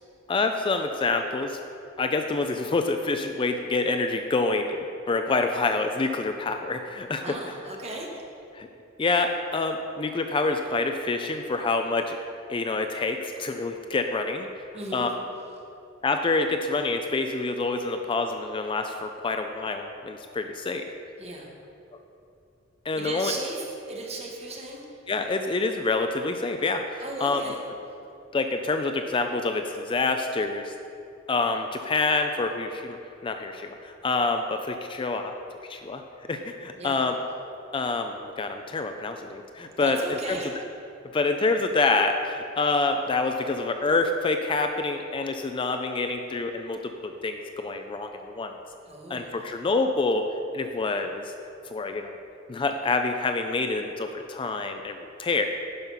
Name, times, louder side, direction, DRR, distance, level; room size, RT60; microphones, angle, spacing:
voice 1, 0.3-1.6 2.0-4.8 5.1-7.2 8.5-8.7 9.0-12.2 12.5-14.5 14.9-15.1 16.0-20.8 22.9-23.3 25.1-27.4 28.3-30.7 31.3-33.0 33.2-35.3 35.7-36.0 36.3-37.2 37.7-40.4 41.1-48.5 49.1-50.3 50.5-51.3 51.7-52.1 52.5-55.5, left 3 dB, 25° left, 6 dB, 0.4 m, -27 dB
voice 2, 7.2-8.2 14.7-15.1 21.2-21.5 22.9-24.8 27.0-27.6 36.8-37.0 39.8-40.5 48.9-49.4, right 2 dB, 30° right, -1 dB, 1.4 m, -36 dB
10.5 x 5.5 x 5.6 m, 2.7 s
head